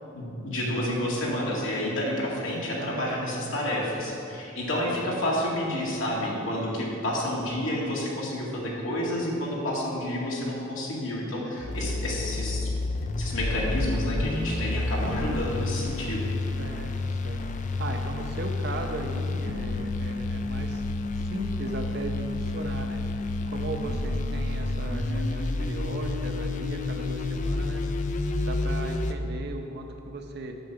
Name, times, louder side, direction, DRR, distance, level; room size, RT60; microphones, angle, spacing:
voice 1, 0.1-12.7 13.2-16.3, left 1 dB, 85° left, -4 dB, 2.2 m, -29 dB
voice 2, 0.7-1.0 2.8-3.9 4.8-4.9 16.6-17.4 17.8-20.8 21.2-23.0 23.5-27.9 28.4-30.6, right 2 dB, 55° right, 4 dB, 0.9 m, -37 dB
sound 1, 11.6-29.1, left 2 dB, 40° left, 0.5 m, -30 dB
7.8 x 7.7 x 5.9 m, 2.7 s
head